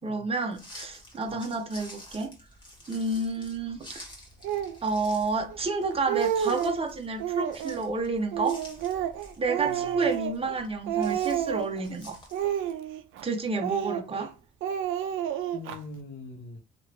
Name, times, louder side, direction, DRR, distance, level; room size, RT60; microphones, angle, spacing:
voice 1, 0.0-2.3 2.9-4.0 4.8-8.6 9.4-12.2 13.2-14.3, right 3 dB, 30° right, 0.8 m, -30 dB
sound 1, 0.5-12.7, left 1 dB, 25° left, 1.3 m, -49 dB
Speech, 4.4-4.8 5.5-5.6 5.9-6.8 7.2-7.8 8.3-10.6 10.9-11.8 12.3-13.2 13.6-14.3 14.6-15.8, right 10 dB, 90° right, 0.4 m, -30 dB
voice 2, 9.6-10.0 15.5-16.6, left 3 dB, 70° left, 0.8 m, -43 dB
2.9 x 2.5 x 3.0 m
cardioid pair, 90°, 20 cm